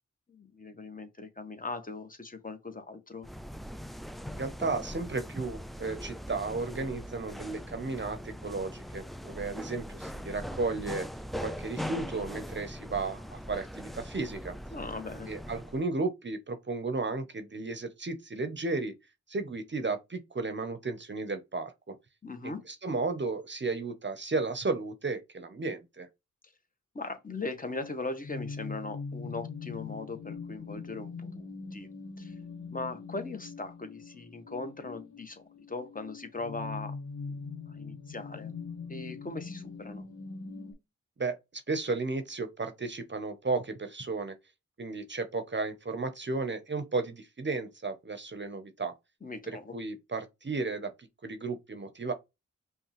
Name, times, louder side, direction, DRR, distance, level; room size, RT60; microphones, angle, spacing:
voice 1, 0.3-3.3 14.7-15.3 22.2-22.6 26.9-31.9 32.2-32.3 32.7-37.0 37.3-37.4 37.7-38.5 38.9-40.1 49.2-49.8, left 3 dB, 25° left, 1.0 m, -39 dB
sound 1, 3.2-15.8, equal, ahead, 0.3 m, -41 dB
voice 2, 4.3-11.1 11.4-14.5 15.3-19.0 19.3-22.0 22.4-26.1 41.2-44.4 44.8-48.9 49.5-50.9 51.2-52.1, right 3 dB, 35° right, 0.7 m, -34 dB
sound 2, 27.5-40.7, left 4 dB, 80° left, 1.1 m, -42 dB
5.3 x 2.3 x 3.0 m
cardioid pair, 45°, 30 cm